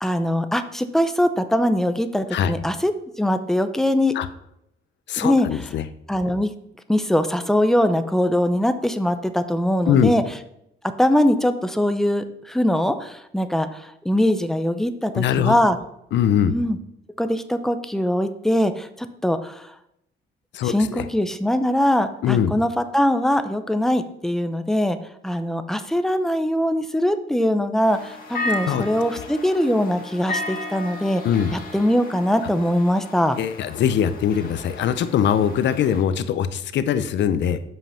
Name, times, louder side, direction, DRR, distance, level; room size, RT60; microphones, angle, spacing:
voice 1, 0.0-2.9 3.2-4.2 5.2-5.7 6.1-6.5 6.9-10.2 11.0-15.8 16.5-16.8 17.2-19.7 20.6-25.0 25.2-31.2 31.5-33.4, left 1 dB, ahead, 9 dB, 0.6 m, -22 dB
voice 2, 5.1-5.8 9.9-10.1 15.1-15.5 16.1-16.5 20.5-21.0 22.2-22.5 28.7-28.8 31.2-31.5 33.4-37.6, left 9 dB, 65° left, 12 dB, 0.7 m, -21 dB
sound 1, 27.9-36.0, left 2 dB, 45° left, 2.1 m, -34 dB
7.8 x 5.5 x 5.7 m, 0.77 s
cardioid pair, 130°, 20 cm